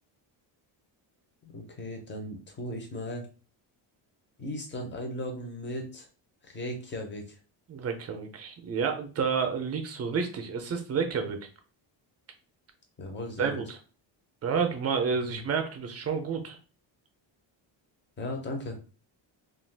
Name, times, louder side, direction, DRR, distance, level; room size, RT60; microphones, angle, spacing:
voice 1, 1.4-3.3 4.4-6.1 6.4-7.4 13.0-13.6 15.2-15.4 18.2-18.8, left 1 dB, 25° left, 3 dB, 0.5 m, -37 dB
voice 2, 7.7-11.4 13.4-13.8 14.4-16.6, right 6 dB, 35° right, 5 dB, 0.4 m, -30 dB
2.4 x 2.2 x 3.3 m, 0.37 s
cardioid pair, 165°, 47 cm